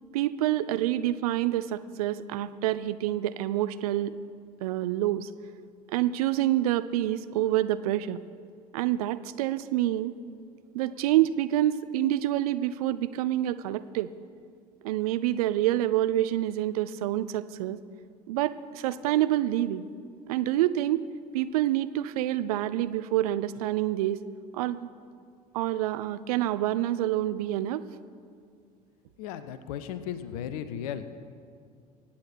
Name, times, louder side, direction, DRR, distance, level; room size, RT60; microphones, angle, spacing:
voice 1, 0.1-4.1 4.6-5.3 5.9-8.2 8.7-10.1 10.7-14.1 14.8-17.8 18.3-19.9 20.3-21.1 21.3-24.2 24.5-24.9 25.5-27.8, right 13 dB, 65° right, 14 dB, 0.5 m, -27 dB
voice 2, 29.2-31.1, left 9 dB, 60° left, 12 dB, 0.8 m, -35 dB
24.0 x 8.7 x 4.4 m, 2.3 s
figure-of-eight pair, 60°, 21 cm